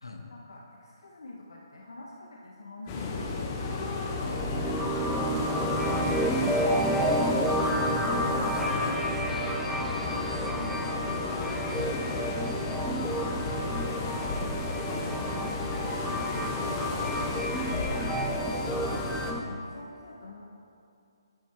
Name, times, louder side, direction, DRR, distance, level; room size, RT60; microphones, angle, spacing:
voice 1, 0.3-3.4 5.1-7.7 9.9-11.2 12.1-14.0 14.7-18.0 19.4-20.4, left 2 dB, 65° left, -2 dB, 0.9 m, -45 dB
sound 1, 2.9-19.3, left 3 dB, 25° left, 1.0 m, -33 dB
sound 2, 4.0-19.4, right 1 dB, ahead, 0.4 m, -31 dB
voice 2, 4.1-4.4 7.6-9.6 11.7-12.0 18.8-19.1, left 2 dB, 80° left, 1 dB, 1.3 m, -38 dB
10.5 x 7.4 x 3.4 m, 2.6 s
figure-of-eight pair, 140°, 2 cm